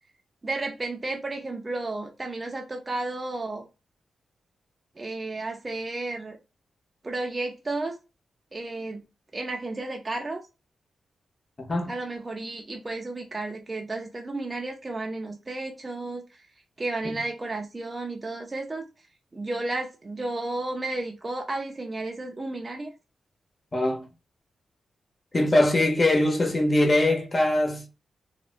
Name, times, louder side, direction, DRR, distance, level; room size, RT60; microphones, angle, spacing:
voice 1, 0.4-3.7 5.0-6.4 7.0-8.0 8.5-9.0 9.3-10.4 11.9-16.2 16.8-18.8 19.3-22.9, right 2 dB, 25° right, 0.5 m, -32 dB
voice 2, 11.6-12.0 17.0-17.2 23.7-24.1 25.3-27.9, left 1 dB, 25° left, 0.8 m, -22 dB
3.4 x 2.1 x 2.4 m
wide cardioid pair, 115°, 0 cm